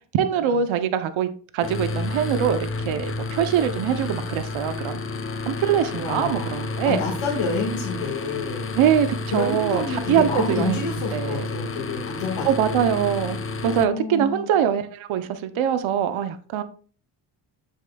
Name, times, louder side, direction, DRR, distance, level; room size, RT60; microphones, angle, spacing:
voice 1, 0.1-5.0 5.5-7.0 8.8-10.8 11.1-11.4 12.4-13.4 13.6-16.6, right 9 dB, 80° right, 10 dB, 0.8 m, -23 dB
sound 1, 1.6-13.8, left 3 dB, 30° left, 0.7 m, -31 dB
voice 2, 6.0-8.7 9.3-13.0 13.7-14.5, left 4 dB, 85° left, -2 dB, 1.7 m, -29 dB
7.3 x 6.6 x 2.3 m, 0.42 s
cardioid pair, 80°, 47 cm